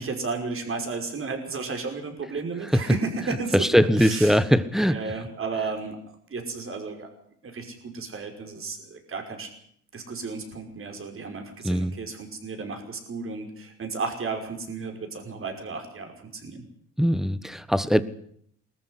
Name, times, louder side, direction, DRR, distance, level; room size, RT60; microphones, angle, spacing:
voice 1, 0.0-3.7 4.0-4.4 4.9-6.0 6.3-7.1 7.4-9.5 9.9-16.6, right 4 dB, 45° right, 4 dB, 5.7 m, -33 dB
voice 2, 3.5-5.0 11.6-11.9 17.0-18.0, equal, ahead, 16 dB, 1.2 m, -21 dB
20.0 x 14.0 x 9.9 m, 0.67 s
cardioid pair, 90°, 30 cm